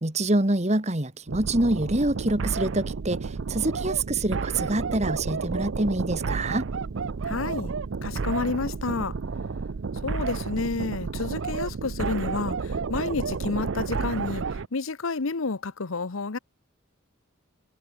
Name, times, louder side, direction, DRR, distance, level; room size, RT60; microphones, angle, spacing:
voice 1, 0.0-6.7, right 2 dB, 35° right, 1.8 m, -26 dB
sound 1, 1.3-14.7, right 4 dB, 70° right, 0.5 m, -31 dB
voice 2, 7.2-7.7 8.0-9.2 10.0-14.4 14.7-16.4, left 3 dB, 85° left, 0.9 m, -30 dB
head